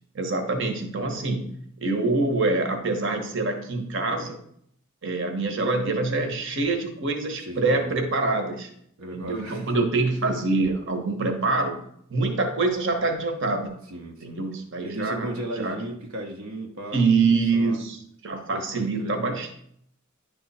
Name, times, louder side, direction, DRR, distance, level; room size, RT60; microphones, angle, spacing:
voice 1, 0.1-1.5 1.8-4.4 5.0-8.7 9.1-11.8 12.1-13.7 14.2-15.8 16.9-19.6, right 3 dB, 60° right, 5 dB, 1.1 m, -25 dB
voice 2, 7.4-7.9 9.0-9.7 13.9-14.4 14.8-17.8 18.5-19.2, right 1 dB, 85° right, 1 dB, 0.9 m, -36 dB
10.5 x 3.5 x 4.2 m, 0.68 s
head